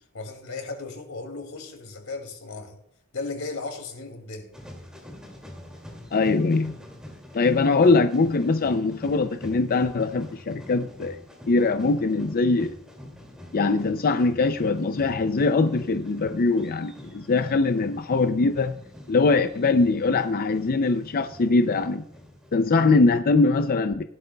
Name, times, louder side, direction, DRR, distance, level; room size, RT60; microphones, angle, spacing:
voice 1, 0.1-2.8 3.1-4.5, left 3 dB, 90° left, 2.5 m, -35 dB
sound 1, 4.5-23.2, left 1 dB, 5° right, 2.4 m, -45 dB
voice 2, 6.1-6.7 7.3-11.2 11.5-12.7 13.5-18.8 19.1-22.0 22.5-24.0, left 3 dB, 45° left, 0.5 m, -22 dB
16.5 x 12.0 x 2.3 m
head